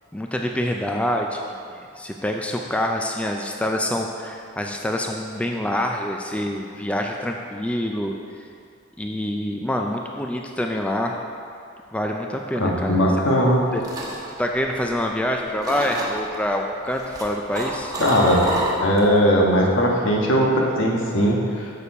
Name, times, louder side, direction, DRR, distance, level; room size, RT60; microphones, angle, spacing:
voice 1, 0.1-8.1 9.0-11.2 11.9-13.0 13.7-13.8 14.4-17.9, left 1 dB, 5° left, 2 dB, 0.3 m, -26 dB
voice 2, 12.6-13.6 18.0-18.4 18.8-21.7, equal, 70° left, -2 dB, 1.3 m, -19 dB
sound 1, 13.4-15.3 15.6-16.4 16.9-19.2 19.5-19.8, right 1 dB, 20° right, 1.2 m, -29 dB
6.9 x 6.8 x 4.8 m, 2.4 s
head